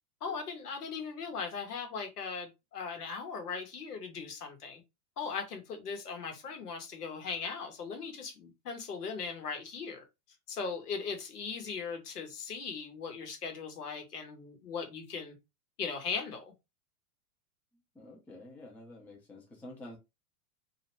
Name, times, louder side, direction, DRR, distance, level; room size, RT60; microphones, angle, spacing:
voice 1, 0.2-4.8 5.2-10.0 10.5-15.4 15.8-16.5, left 5 dB, 90° left, 1.0 m, -39 dB
voice 2, 17.9-20.0, left 1 dB, 5° left, 0.3 m, -49 dB
2.4 x 2.1 x 2.9 m
hypercardioid pair, 105°, 45 cm